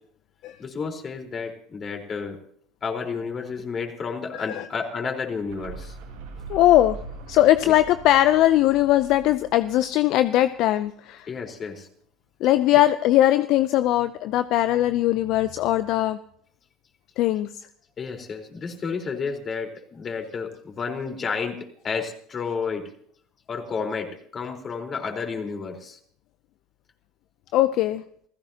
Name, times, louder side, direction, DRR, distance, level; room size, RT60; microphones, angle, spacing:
voice 1, 0.6-2.4 2.8-6.0 7.6-7.7 11.3-11.9 18.0-22.9 23.5-26.0, left 5 dB, 35° left, 3 dB, 4.3 m, -31 dB
voice 2, 4.3-4.6 6.5-7.0 7.3-11.3 12.4-16.2 17.2-17.7 27.5-28.0, left 14 dB, 60° left, 13 dB, 0.6 m, -20 dB
sound 1, 5.2-11.0, right 4 dB, 80° right, 6.4 m, -42 dB
28.5 x 16.0 x 2.9 m, 0.62 s
hypercardioid pair, 85°, 0 cm